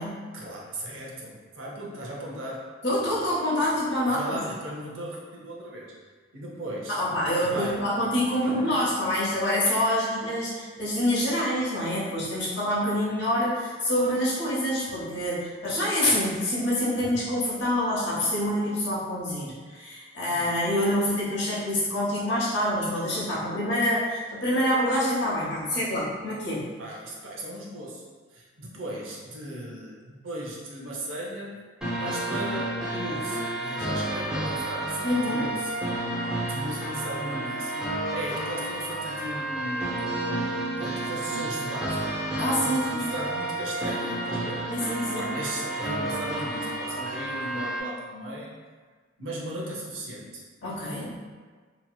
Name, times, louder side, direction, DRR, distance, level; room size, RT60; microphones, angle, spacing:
voice 1, 0.3-2.6 4.0-5.9 6.3-7.0 7.4-7.8 8.4-9.1 20.3-20.5 26.8-28.0 28.3-31.6 32.0-35.7 36.2-39.9 40.8-42.1 42.6-44.6 45.2-48.5 49.2-50.4, right 1 dB, 90° right, -3 dB, 0.7 m, -37 dB
voice 2, 2.8-4.4 6.9-26.7 35.0-35.5 42.4-43.1 44.7-45.3 50.6-51.1, left 1 dB, 65° left, -7 dB, 1.0 m, -26 dB
sound 1, 31.8-47.8, right 1 dB, 5° right, 0.5 m, -31 dB
2.8 x 2.8 x 2.3 m, 1.5 s
head